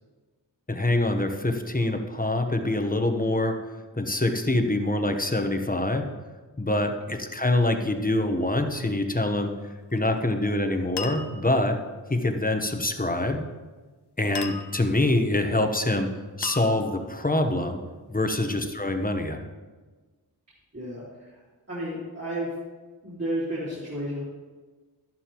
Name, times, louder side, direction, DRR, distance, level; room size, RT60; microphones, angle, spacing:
voice 1, 0.7-3.6 3.9-6.1 6.6-9.5 9.9-11.8 12.1-13.4 14.2-16.1 16.4-17.8 18.1-19.4, left 2 dB, 20° left, 5 dB, 1.0 m, -25 dB
sound 1, 9.9-10.3 11.0-11.7 14.3-15.1 16.4-17.3, left 5 dB, 70° left, 0.7 m, -37 dB
voice 2, 20.7-21.4 21.7-22.5 23.0-24.2, right 1 dB, 35° right, -10 dB, 3.3 m, -32 dB
11.5 x 11.5 x 3.0 m, 1.3 s
wide cardioid pair, 60°, 41 cm